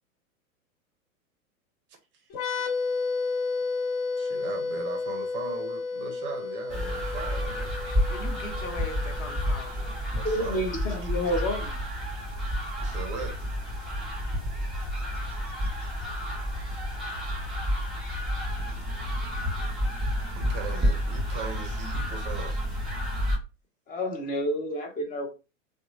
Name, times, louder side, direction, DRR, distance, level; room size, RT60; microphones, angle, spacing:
sound 1, 2.3-9.8, left 4 dB, 50° left, 1.1 m, -32 dB
voice 1, 4.2-7.9 10.1-10.6 11.2-11.3 12.8-13.5 20.3-22.6, right 5 dB, 30° right, 0.6 m, -39 dB
sound 2, 6.7-23.4, equal, ahead, 1.6 m, -30 dB
voice 2, 8.1-10.1, left 2 dB, 85° left, 0.9 m, -40 dB
voice 3, 10.2-11.7 23.9-25.3, equal, 20° left, 0.9 m, -29 dB
2.8 x 2.2 x 2.7 m
hypercardioid pair, 105°, 39 cm